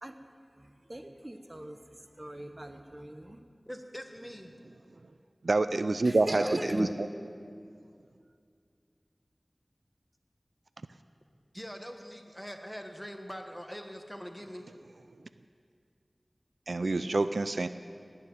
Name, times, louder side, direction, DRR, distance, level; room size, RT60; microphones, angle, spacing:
voice 1, 0.6-1.8 2.2-3.5 6.0-6.9, right 1 dB, 35° right, 7 dB, 1.0 m, -36 dB
voice 2, 3.7-4.5 6.6-6.8 11.5-14.7, equal, ahead, 4 dB, 1.4 m, -43 dB
voice 3, 5.4-6.5 6.7-6.9 16.7-17.7, right 3 dB, 85° right, 11 dB, 0.4 m, -27 dB
17.5 x 7.2 x 9.3 m, 2.3 s
wide cardioid pair, 55°, 0 cm